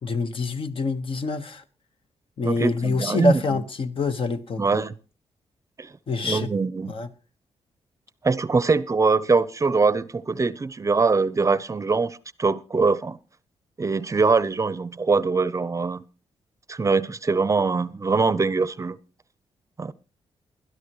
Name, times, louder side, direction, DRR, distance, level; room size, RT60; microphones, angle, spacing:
voice 1, 0.0-1.6 2.4-4.8 6.1-6.5 6.9-7.1, left 3 dB, 55° left, 1.2 m, -26 dB
voice 2, 2.4-3.6 4.6-4.9 5.8-5.9 6.2-6.9 8.2-13.2 13.8-16.0 16.7-19.0 19.8-19.9, right 4 dB, 30° right, 0.6 m, -23 dB
21.0 x 12.5 x 3.0 m
cardioid pair, 90°, 11 cm